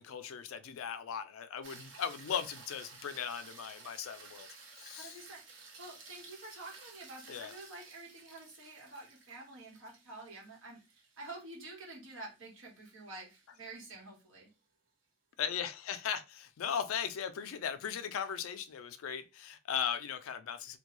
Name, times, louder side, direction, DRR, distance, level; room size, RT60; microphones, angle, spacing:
voice 1, 0.0-4.5 4.8-5.2 7.3-7.5 15.4-20.8, left 8 dB, 80° left, 0.4 m, -38 dB
sound 1, 1.6-14.0 18.5-18.6, right 4 dB, 60° right, 0.7 m, -55 dB
voice 2, 5.0-14.5, right 2 dB, 75° right, 1.2 m, -49 dB
2.3 x 2.2 x 2.9 m
head